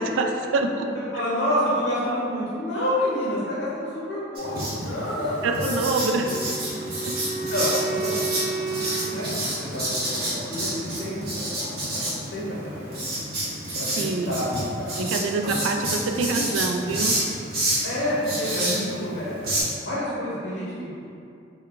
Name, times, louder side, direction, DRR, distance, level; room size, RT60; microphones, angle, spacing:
voice 1, 0.0-0.9 5.4-6.4 7.0-7.1 14.0-14.4 14.9-17.2, right 3 dB, 75° right, 4 dB, 0.3 m, -25 dB
voice 2, 0.9-5.7 5.9-6.0 7.3-8.4 8.7-13.0 13.7-15.0 15.4-15.6 17.8-21.1, left 1 dB, 55° left, -8 dB, 0.7 m, -29 dB
Writing, 4.4-19.6, right 1 dB, 50° right, 0.9 m, -29 dB
Wind instrument woodwind instrument, 6.1-10.2, right 4 dB, 10° left, 0.9 m, -32 dB
4.8 x 2.3 x 2.3 m, 2.5 s
head